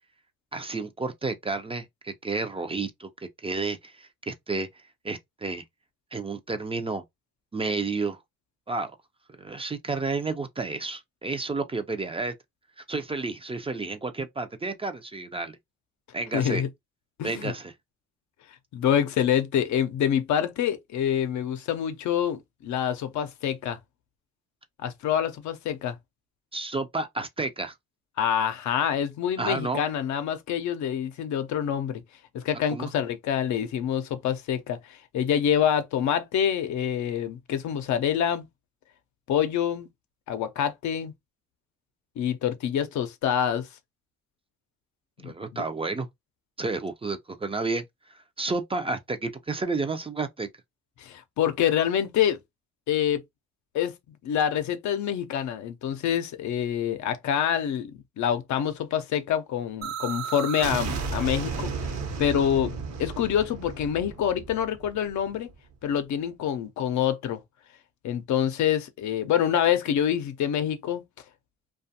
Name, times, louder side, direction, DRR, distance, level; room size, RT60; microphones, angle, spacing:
voice 1, 0.5-3.1 3.4-4.7 5.0-5.6 6.1-7.0 7.5-8.2 8.7-8.9 9.3-12.3 12.8-15.6 16.1-16.6 17.2-17.7 26.5-27.7 29.4-29.8 32.7-32.9 45.2-46.1 46.6-47.8 48.4-50.5, right 3 dB, 20° right, 0.4 m, -31 dB
voice 2, 16.3-16.7 17.2-17.5 18.7-23.8 24.8-26.0 28.2-32.0 32.3-38.4 39.3-39.9 40.3-41.1 42.2-43.7 45.2-45.6 51.0-52.4 52.9-53.2 53.7-53.9 54.2-61.7 62.2-65.5 65.8-67.4 68.0-71.0, left 9 dB, 70° left, 0.6 m, -26 dB
sound 1, 59.8-65.5, right 5 dB, 60° right, 0.9 m, -33 dB
2.4 x 2.3 x 2.7 m
cardioid pair, 90°, 30 cm